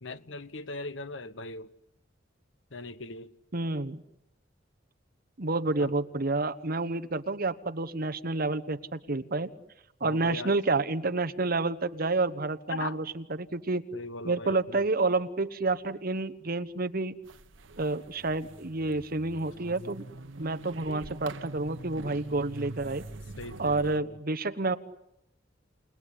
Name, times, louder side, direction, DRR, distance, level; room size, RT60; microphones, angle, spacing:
voice 1, 0.0-1.7 2.7-3.3 5.8-5.9 10.0-10.5 12.7-13.0 13.9-14.8 23.4-24.2, left 2 dB, 75° left, 1.0 m, -39 dB
voice 2, 3.5-4.0 5.4-9.5 10.0-13.8 14.2-17.1 17.8-20.0 20.4-23.0 23.6-24.8, right 3 dB, 50° right, 1.2 m, -29 dB
sound 1, 17.2-24.0, right 2 dB, 85° right, 1.1 m, -44 dB
29.0 x 19.0 x 10.0 m
head